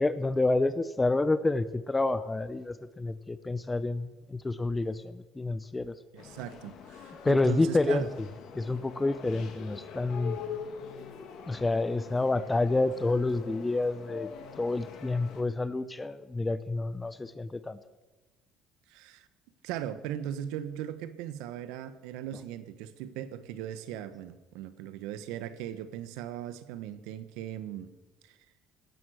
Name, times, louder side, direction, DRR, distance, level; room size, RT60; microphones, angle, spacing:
voice 1, 0.0-6.0 7.2-8.1 8.5-10.4 11.5-14.3 14.6-17.8, left 2 dB, 15° left, 14 dB, 0.7 m, -28 dB
voice 2, 6.1-8.1 18.9-19.3 19.6-27.9 28.2-28.4, right 10 dB, 80° right, 13 dB, 1.2 m, -38 dB
sound 1, 6.2-15.4, left 7 dB, 65° left, 2.8 m, -44 dB
17.5 x 12.5 x 6.4 m, 1.1 s
supercardioid pair, 90°, 0 cm